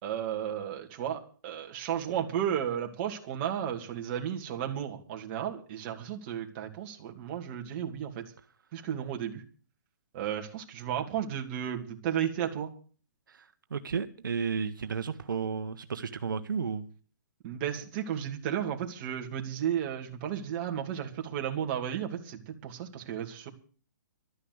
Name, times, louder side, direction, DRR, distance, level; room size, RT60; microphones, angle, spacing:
voice 1, 0.0-8.3 8.7-9.4 10.1-12.7 17.4-23.5, right 9 dB, 35° right, 2.4 m, -33 dB
voice 2, 13.3-16.9, right 6 dB, 85° right, 1.2 m, -33 dB
12.5 x 9.8 x 8.0 m
hypercardioid pair, 150°, 11 cm